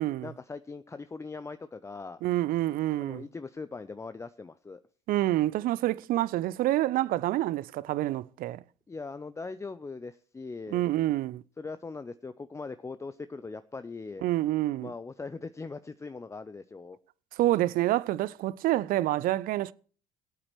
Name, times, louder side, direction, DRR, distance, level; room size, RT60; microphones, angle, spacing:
voice 1, 0.2-2.2 3.0-4.8 8.9-10.8 11.6-14.2 14.8-17.0, left 4 dB, 15° left, 0.5 m, -40 dB
voice 2, 2.2-3.2 5.1-8.6 10.7-11.4 14.2-14.9 17.4-19.7, right 15 dB, 50° right, 0.5 m, -27 dB
21.0 x 8.7 x 3.2 m
figure-of-eight pair, 60°, 19 cm